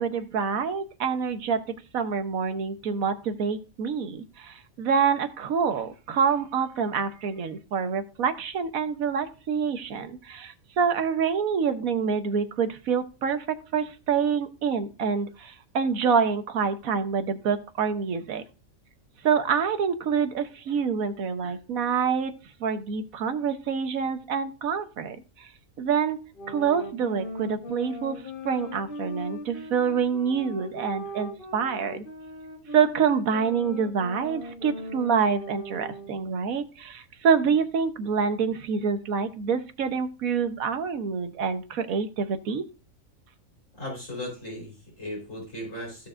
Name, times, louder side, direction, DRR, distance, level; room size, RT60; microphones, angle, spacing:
voice 1, 0.0-1.6 1.9-18.4 19.2-22.3 22.6-25.5 25.8-28.1 28.4-32.0 32.7-42.6, right 6 dB, 90° right, 9 dB, 1.4 m, -26 dB
sound 1, 26.3-36.3, left 1 dB, 40° left, 1.6 m, -39 dB
voice 2, 43.7-46.1, left 1 dB, 65° left, -3 dB, 4.5 m, -37 dB
15.5 x 6.7 x 2.5 m, 0.33 s
omnidirectional pair, 1.4 m